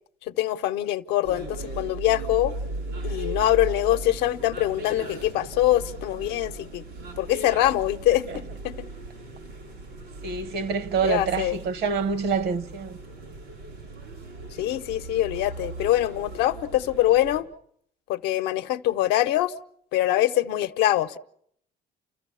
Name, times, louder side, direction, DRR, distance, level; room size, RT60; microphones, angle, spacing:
voice 1, 0.3-2.5 3.0-6.8 7.2-8.9 11.0-11.6 14.6-17.5 18.1-19.5 19.9-21.2, left 14 dB, 90° left, 0.7 m, -24 dB
sound 1, 1.2-17.4, right 2 dB, 90° right, 5.3 m, -37 dB
voice 2, 10.2-13.0, right 5 dB, 70° right, 1.1 m, -26 dB
30.0 x 14.0 x 7.0 m
cardioid pair, 110°, 17 cm